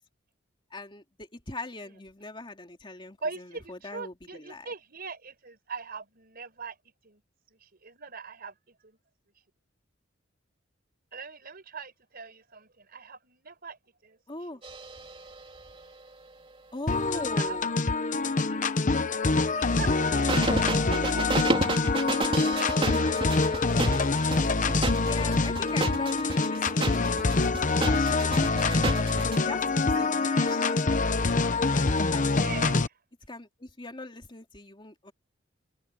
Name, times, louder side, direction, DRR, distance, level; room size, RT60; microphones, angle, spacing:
voice 1, 0.7-4.7 14.3-14.6 16.7-17.7 21.2-22.5 23.6-24.2 25.0-27.2 27.6-30.9 31.7-32.6 33.3-35.1, left 2 dB, 25° left, 2.7 m, -41 dB
voice 2, 3.2-6.8 7.0-7.2 7.6-9.0 11.1-14.2 16.9-17.6 17.9-18.2 19.0-19.2 19.5-24.0 29.9-30.6 32.3-32.9, right 4 dB, 50° right, 5.3 m, -42 dB
sound 1, 14.6-16.1 20.3-29.4, right 2 dB, 30° right, 3.2 m, -32 dB
sound 2, 16.9-32.9, left 3 dB, 40° left, 0.9 m, -25 dB
open air
head